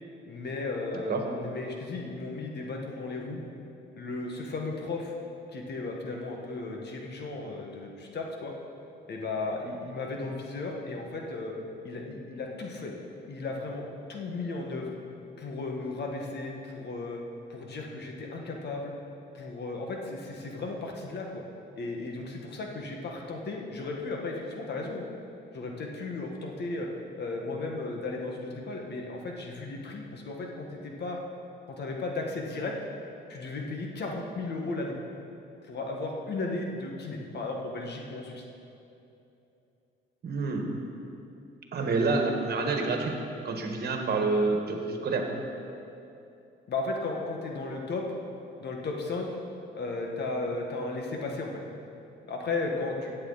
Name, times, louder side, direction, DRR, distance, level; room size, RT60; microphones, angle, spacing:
voice 1, 0.3-3.4 3.9-5.2 5.5-8.5 9.1-11.5 11.8-12.9 13.3-14.9 15.4-17.2 17.5-18.9 19.3-21.4 21.7-25.0 25.5-26.9 27.2-31.2 31.7-32.7 33.3-34.9 35.6-38.4 46.7-48.0 48.6-49.3 49.7-51.6 52.3-53.1, left 3 dB, 55° left, 1 dB, 1.6 m, -35 dB
voice 2, 40.2-40.7 41.7-43.1 43.4-45.3, right 3 dB, 55° right, 2 dB, 1.6 m, -28 dB
14.5 x 8.7 x 4.1 m, 2.8 s
cardioid pair, 90°, 20 cm